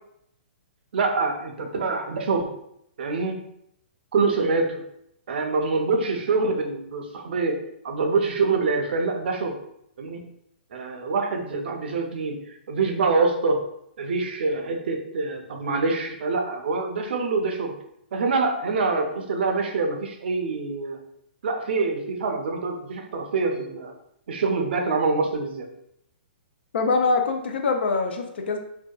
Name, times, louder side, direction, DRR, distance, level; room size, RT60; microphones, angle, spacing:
voice 1, 0.9-2.5 3.0-3.4 4.1-4.8 5.3-7.6 7.8-9.6 10.0-10.2 10.7-13.6 14.0-17.7 18.1-21.0 21.4-23.9 24.3-25.7, right 4 dB, 70° right, 3 dB, 0.5 m, -25 dB
voice 2, 26.7-28.6, left 4 dB, 75° left, 5 dB, 0.4 m, -23 dB
2.6 x 2.2 x 2.2 m, 0.74 s
hypercardioid pair, 150°, 6 cm